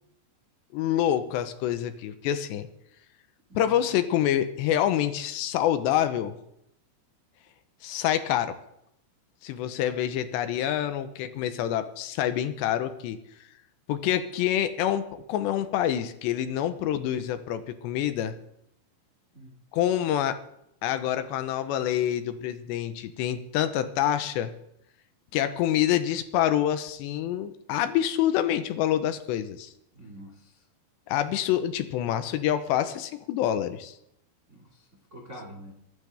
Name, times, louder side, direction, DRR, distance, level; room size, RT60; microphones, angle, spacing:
voice 1, 0.7-2.7 3.5-6.4 7.8-8.6 9.4-13.2 13.9-18.4 19.7-20.4 20.8-24.5 25.3-29.7 31.1-34.0, left 11 dB, 80° left, 10 dB, 2.8 m, -27 dB
voice 2, 29.9-30.6 34.5-35.7, equal, 60° right, 1 dB, 0.7 m, -46 dB
24.0 x 12.0 x 3.5 m, 0.77 s
omnidirectional pair, 5.5 m